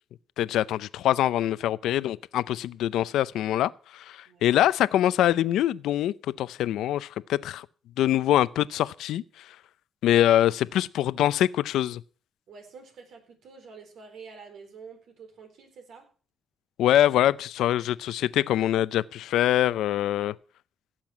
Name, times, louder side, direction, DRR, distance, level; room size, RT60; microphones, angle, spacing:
voice 1, 0.4-7.7 8.0-9.2 10.0-12.0 16.8-20.3, left 12 dB, 85° left, 0.5 m, -24 dB
voice 2, 12.5-16.1 20.2-20.3, right 5 dB, 70° right, 4.2 m, -48 dB
16.5 x 7.6 x 6.1 m
cardioid pair, 90°, 0 cm